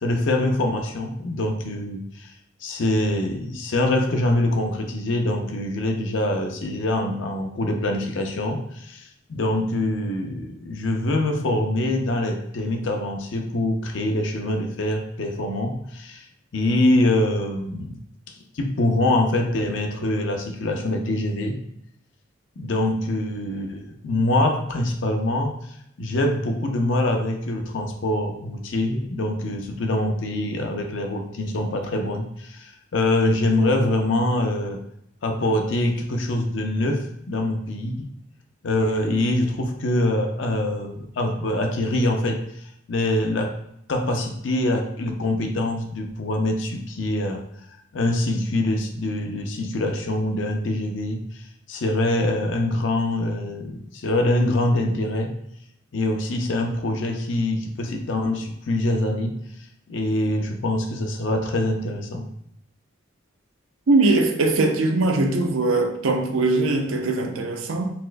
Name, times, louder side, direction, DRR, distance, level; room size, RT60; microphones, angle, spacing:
voice 1, 0.0-2.3 2.6-16.2 16.5-18.0 18.5-21.6 22.6-25.7 26.0-34.8 35.2-38.1 38.6-42.4 42.9-43.6 43.9-47.4 47.9-51.4 51.7-55.3 55.9-59.3 59.9-62.3, left 1 dB, 65° left, 0.5 m, -24 dB
voice 2, 63.9-67.9, right 2 dB, 85° right, 0.5 m, -21 dB
4.1 x 2.5 x 2.2 m
head